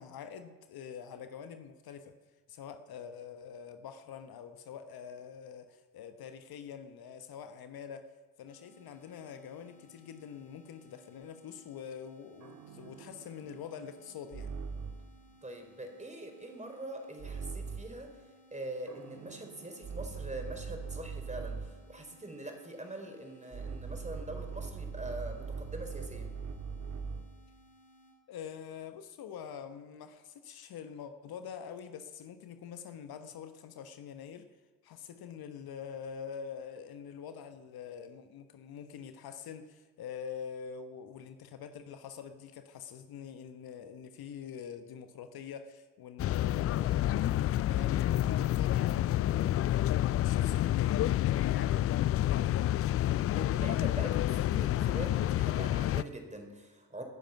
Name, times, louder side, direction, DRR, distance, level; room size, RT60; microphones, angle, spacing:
voice 1, 0.0-2.1 2.5-8.1 8.4-14.6 28.3-34.5 34.8-52.7, left 7 dB, 55° left, 9 dB, 1.2 m, -45 dB
sound 1, 8.5-28.2, equal, 85° left, 4.4 m, -62 dB
sound 2, 12.4-15.2 17.2-18.0 18.9-21.9 23.5-27.4, right 5 dB, 40° right, 1.7 m, -41 dB
voice 2, 15.4-18.1 18.5-26.3 53.3-57.0, right 1 dB, 15° right, 3 dB, 4.5 m, -43 dB
sound 3, 46.2-56.0, left 13 dB, 35° left, 0.4 m, -29 dB
19.0 x 10.5 x 5.9 m, 1.3 s
hypercardioid pair, 50°, 43 cm